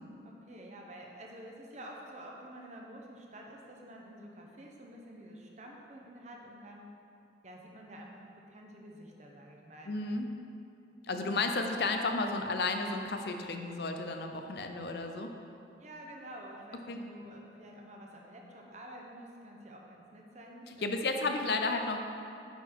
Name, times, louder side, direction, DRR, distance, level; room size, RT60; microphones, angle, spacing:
voice 1, 0.2-6.9 7.4-9.9 11.0-11.3 11.6-11.7 15.8-21.3, right 1 dB, 40° right, 0 dB, 0.8 m, -49 dB
voice 2, 9.9-10.3 11.1-15.3 16.9-17.0 20.8-22.0, left 3 dB, 65° left, 5 dB, 0.5 m, -32 dB
9.4 x 3.9 x 4.6 m, 2.6 s
head